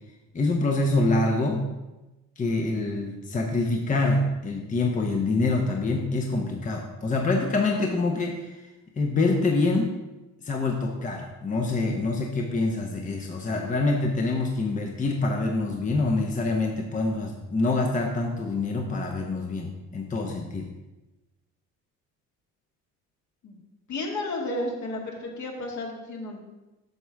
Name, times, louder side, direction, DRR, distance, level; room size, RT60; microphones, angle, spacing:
voice 1, 0.3-1.6 2.4-8.6 9.0-9.9 10.4-20.7, left 2 dB, 25° left, 2 dB, 0.9 m, -26 dB
voice 2, 23.9-26.4, left 2 dB, 55° left, 0 dB, 2.0 m, -32 dB
8.0 x 6.1 x 3.5 m, 1.1 s
supercardioid pair, 90°, 34 cm